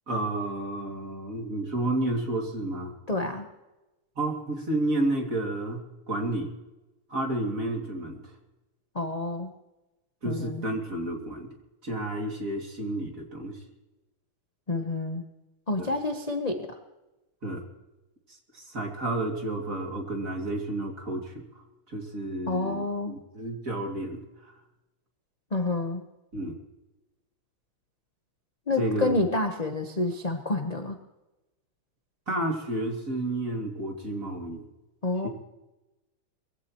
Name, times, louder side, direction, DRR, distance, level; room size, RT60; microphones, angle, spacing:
voice 1, 0.1-2.9 4.2-6.5 7.1-8.2 10.2-11.5 11.8-13.6 15.8-15.9 17.4-17.6 18.5-21.4 21.9-24.2 26.3-26.6 28.8-29.2 32.3-34.6 35.2-35.3, right 1 dB, 40° right, 1 dB, 2.9 m, -31 dB
voice 2, 3.1-3.5 8.9-9.5 10.2-10.7 14.7-15.2 15.7-16.8 22.5-23.2 25.5-26.0 28.7-31.0 35.0-35.3, left 2 dB, 30° left, 4 dB, 0.7 m, -29 dB
22.0 x 16.0 x 3.1 m, 1.0 s
omnidirectional pair, 2.4 m